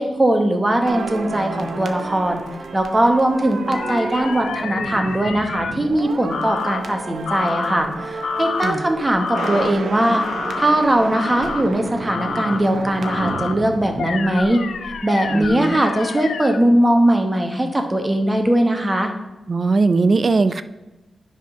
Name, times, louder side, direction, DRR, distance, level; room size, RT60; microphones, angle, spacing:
voice 1, 0.0-2.4 2.7-10.2 10.6-14.6 15.0-19.1, right 1 dB, 20° right, 4 dB, 1.0 m, -20 dB
sound 1, 0.9-15.0 15.3-15.5, right 3 dB, 65° right, 0.8 m, -31 dB
sound 2, 3.7-5.7 6.3-6.8 7.2-7.8 8.2-8.8 9.2-9.7 10.2-10.7 11.1-11.6 12.1-12.6 13.0-13.5 14.0-16.6, left 5 dB, 80° left, 0.6 m, -28 dB
voice 2, 15.3-15.8 19.5-20.6, right 3 dB, 45° right, 12 dB, 0.4 m, -19 dB
10.0 x 3.7 x 5.6 m, 1.1 s
wide cardioid pair, 115°, 0 cm